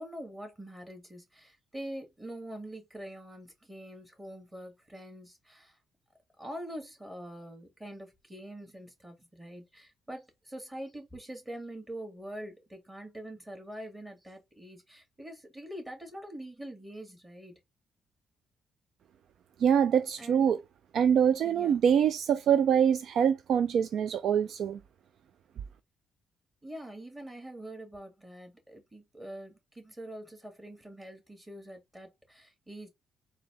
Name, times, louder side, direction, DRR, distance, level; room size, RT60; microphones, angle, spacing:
voice 1, 0.0-5.8 6.4-17.6 20.2-20.5 21.4-21.8 26.6-32.9, right 1 dB, 15° right, 2.2 m, -44 dB
voice 2, 19.6-20.6 20.9-24.8, right 8 dB, 65° right, 0.3 m, -24 dB
3.9 x 2.8 x 3.5 m
cardioid pair, 90°, 0 cm